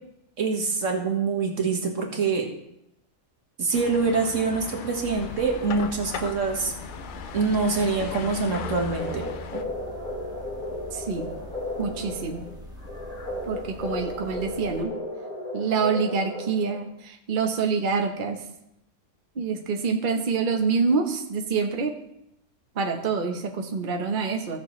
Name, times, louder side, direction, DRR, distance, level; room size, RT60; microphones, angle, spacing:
voice 1, 0.4-2.5 3.6-6.7 7.3-9.3 9.5-9.6, right 4 dB, 75° right, 2 dB, 1.8 m, -25 dB
sound 1, 3.7-9.6, left 7 dB, 60° left, 0.5 m, -37 dB
sound 2, 5.1-14.8, left 1 dB, 5° right, 1.4 m, -43 dB
sound 3, 8.5-16.9, left 1 dB, 40° left, 2.4 m, -34 dB
voice 2, 10.9-11.3 11.8-12.5 13.5-14.9 15.5-18.4 19.4-21.9 22.8-24.6, right 5 dB, 45° right, 3 dB, 1.0 m, -26 dB
15.5 x 6.6 x 3.1 m, 0.82 s
omnidirectional pair, 1.3 m